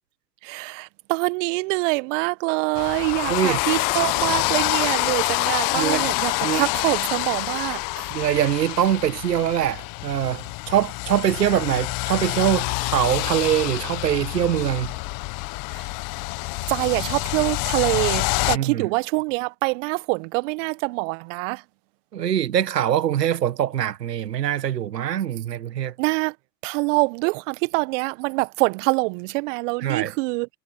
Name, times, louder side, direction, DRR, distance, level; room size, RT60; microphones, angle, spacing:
voice 1, 0.4-8.0 16.7-21.6 26.0-26.3 26.6-30.5, right 27 dB, 45° right, 1.6 m, -25 dB
sound 1, 2.8-18.6, left 27 dB, 40° left, 1.7 m, -26 dB
voice 2, 3.3-3.6 5.7-6.1 6.4-6.7 8.1-14.9 18.5-18.9 22.1-25.9 29.8-30.2, right 10 dB, 75° right, 1.8 m, -23 dB
hypercardioid pair, 100°, 49 cm